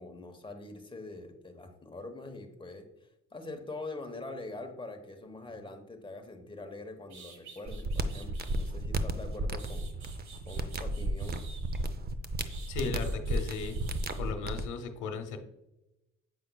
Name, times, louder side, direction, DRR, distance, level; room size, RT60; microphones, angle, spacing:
voice 1, 0.0-2.9 3.3-9.9 10.5-11.4, left 2 dB, 15° left, 5 dB, 1.0 m, -44 dB
sound 1, 6.7-6.8 7.1-8.7 9.3-11.9 12.5-14.2, right 5 dB, 65° right, 1.4 m, -53 dB
sound 2, 7.7-14.7, right 2 dB, 30° right, 0.6 m, -34 dB
voice 2, 12.7-13.8 14.2-15.4, left 4 dB, 90° left, 6 dB, 0.9 m, -36 dB
7.9 x 5.4 x 2.2 m, 0.94 s
cardioid pair, 90°, 30 cm